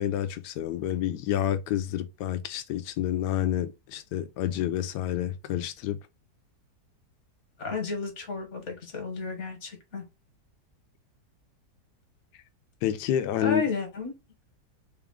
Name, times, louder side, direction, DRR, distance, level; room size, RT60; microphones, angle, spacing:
voice 1, 0.0-6.0 12.8-13.6, left 11 dB, 75° left, 1.1 m, -29 dB
voice 2, 7.6-10.1 13.4-14.1, left 4 dB, 45° left, 1.4 m, -32 dB
3.8 x 2.4 x 3.5 m
omnidirectional pair, 1.8 m